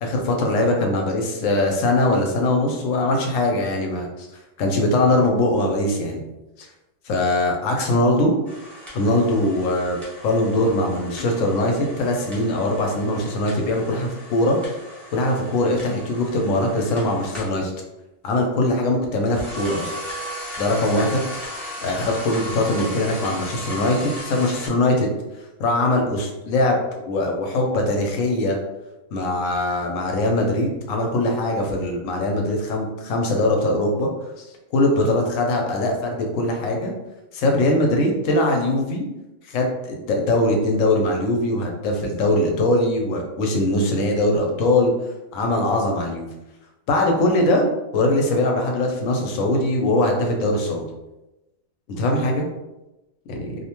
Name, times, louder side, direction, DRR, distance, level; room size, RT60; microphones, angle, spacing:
voice 1, 0.0-4.3 4.6-6.2 7.1-8.3 8.9-10.0 10.2-14.6 15.1-17.7 18.2-19.9 20.6-21.2 21.8-25.1 25.6-26.8 27.1-28.6 29.1-34.1 34.7-36.9 37.3-39.0 39.5-44.9 45.3-46.3 46.9-47.6 47.9-50.8 51.9-52.5 53.3-53.6, left 1 dB, 75° left, 2 dB, 1.0 m, -21 dB
sound 1, 8.5-17.6 19.1-24.7, equal, ahead, 0.7 m, -36 dB
2.6 x 2.1 x 2.9 m, 0.99 s
omnidirectional pair, 1.4 m